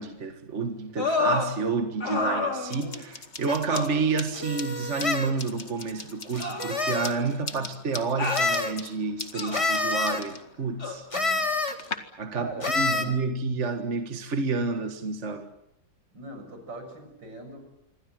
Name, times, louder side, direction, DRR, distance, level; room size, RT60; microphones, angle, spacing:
voice 1, 0.0-11.1 12.2-12.5 12.7-15.5, right 4 dB, 40° right, 1.9 m, -29 dB
sound 1, 1.0-1.5 2.0-3.0 3.7-3.9 5.0-5.1 6.4-7.3 8.2-8.5 9.3-9.8 10.8-11.0, left 3 dB, 55° left, 4.9 m, -29 dB
sound 2, 2.7-12.0, left 4 dB, 35° left, 2.2 m, -41 dB
sound 3, 3.5-3.6 4.3-5.3 6.3-7.1 8.2-8.7 9.5-10.2 11.1-11.7 12.6-13.0, left 3 dB, 15° left, 1.9 m, -27 dB
voice 2, 11.1-11.4 12.3-13.2 16.1-17.7, right 1 dB, 70° right, 7.5 m, -42 dB
27.5 x 24.0 x 7.8 m
omnidirectional pair, 2.0 m